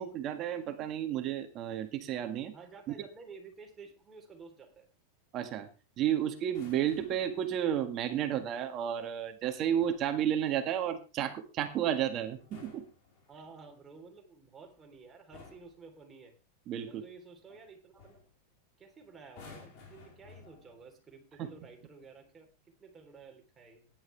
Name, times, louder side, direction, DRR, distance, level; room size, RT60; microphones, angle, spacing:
voice 1, 0.0-2.5 5.3-5.7 6.0-12.8 16.7-17.0 21.4-21.5, right 10 dB, 35° right, 7 dB, 1.7 m, -32 dB
voice 2, 2.5-4.9 13.3-16.3 16.8-18.2 18.8-23.9, right 4 dB, 15° right, 2 dB, 3.5 m, -52 dB
sound 1, 6.4-7.4 9.5-10.1 12.3-13.7 14.7-14.9 15.3-15.8 17.5-17.7 18.0-18.3 19.2-20.9 21.8-22.1, left 4 dB, 50° left, 5.2 m, -54 dB
16.5 x 10.5 x 3.4 m, 0.32 s
supercardioid pair, 140°, 0 cm